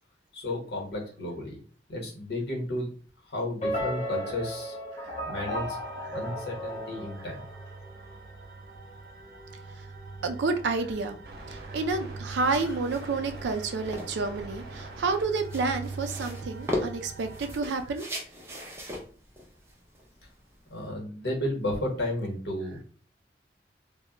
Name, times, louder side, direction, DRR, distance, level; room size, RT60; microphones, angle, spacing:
voice 1, 0.3-1.6 1.9-2.9 3.3-4.7 5.3-5.8 6.1-7.4 12.6-12.7 20.7-22.8, left 1 dB, 75° left, -1 dB, 1.0 m, -33 dB
sound 1, 3.6-7.9, equal, 40° left, 0.7 m, -34 dB
sound 2, 5.4-17.5, right 3 dB, 60° right, 0.8 m, -42 dB
voice 2, 10.2-11.2 11.5-18.1, right 3 dB, 90° right, 7 dB, 0.4 m, -30 dB
sound 3, 12.3-20.9, left 1 dB, 15° right, 0.5 m, -39 dB
2.1 x 2.0 x 3.7 m, 0.42 s
head